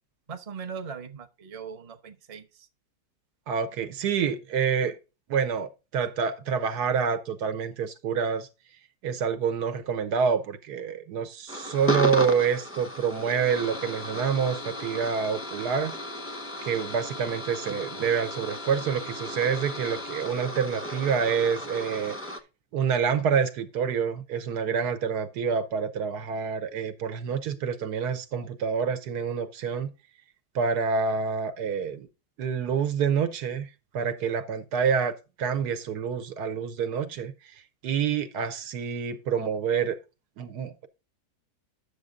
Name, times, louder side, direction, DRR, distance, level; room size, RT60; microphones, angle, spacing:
voice 1, 0.3-2.7, right 6 dB, 35° right, 0.6 m, -40 dB
voice 2, 3.5-5.0 5.3-8.5 9.0-16.0 16.6-22.2 22.7-29.9 30.5-32.1 32.4-33.7 33.9-37.3 37.8-40.0 40.4-40.9, right 6 dB, 90° right, 1.5 m, -27 dB
sound 1, 11.5-22.4, left 1 dB, 10° left, 0.6 m, -35 dB
9.1 x 6.7 x 3.7 m
omnidirectional pair, 1.7 m